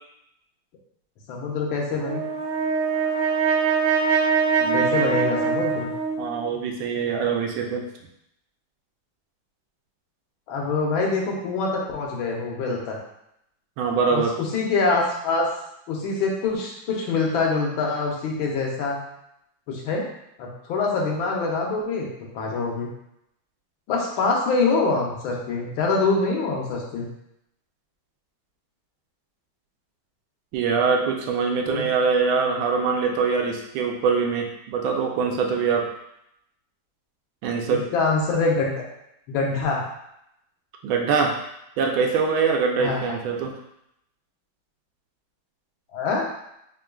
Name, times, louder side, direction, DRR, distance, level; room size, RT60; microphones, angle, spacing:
voice 1, 1.3-2.2 4.7-5.9 10.5-13.0 14.1-15.5 15.9-19.0 19.7-20.1 20.4-22.1 22.3-22.9 23.9-27.1 31.7-31.8 37.7-38.8 39.3-39.8 42.8-43.1 45.9-46.2, left 3 dB, 85° left, -1 dB, 1.6 m, -25 dB
Brass instrument, 2.0-6.5, right 5 dB, 65° right, 1.4 m, -23 dB
voice 2, 4.6-5.3 6.2-7.9 13.8-14.3 30.5-35.9 37.4-37.9 40.8-41.4 41.8-43.5, right 5 dB, 85° right, 2 dB, 1.4 m, -23 dB
3.7 x 3.5 x 2.3 m, 0.80 s
omnidirectional pair, 2.2 m